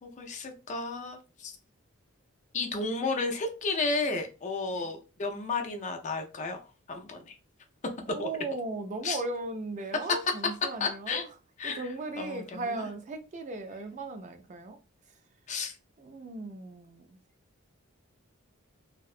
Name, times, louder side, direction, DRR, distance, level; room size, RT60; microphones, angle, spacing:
voice 1, 0.0-1.6 2.5-6.6 6.9-7.4 8.2-8.3 9.0-9.2 10.8-11.2 11.6-11.9 12.2-12.9 15.5-15.7, left 3 dB, 35° left, 0.4 m, -33 dB
voice 2, 8.1-11.3 11.6-14.8 16.0-17.2, right 2 dB, 35° right, 0.3 m, -37 dB
2.7 x 2.1 x 2.4 m
head